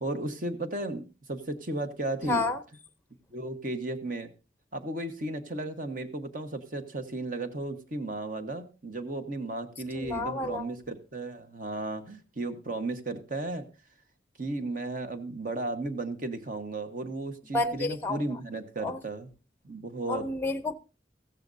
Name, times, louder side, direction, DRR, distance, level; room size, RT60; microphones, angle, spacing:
voice 1, 0.0-2.4 3.3-4.3 4.7-13.7 14.4-19.3 19.6-20.3, right 2 dB, 45° right, 1.3 m, -34 dB
voice 2, 2.2-2.6 9.9-10.7 17.5-18.2 18.8-19.0 20.1-20.7, left 2 dB, 10° left, 0.7 m, -30 dB
15.0 x 14.0 x 2.7 m
head